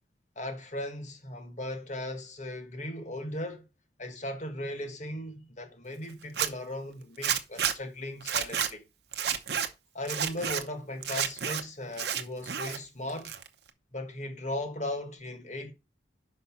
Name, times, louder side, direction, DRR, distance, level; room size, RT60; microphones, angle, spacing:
voice 1, 0.3-3.6 4.0-8.8 9.9-13.3 13.9-15.7, left 1 dB, 40° left, 1.4 m, -37 dB
Zipper (clothing), 6.2-6.5 7.2-7.7 8.2-8.7 9.1-9.7 10.0-10.6 11.0-11.6 11.9-12.8 13.1-13.7, right 8 dB, 60° right, 0.8 m, -30 dB
5.5 x 5.5 x 5.7 m
head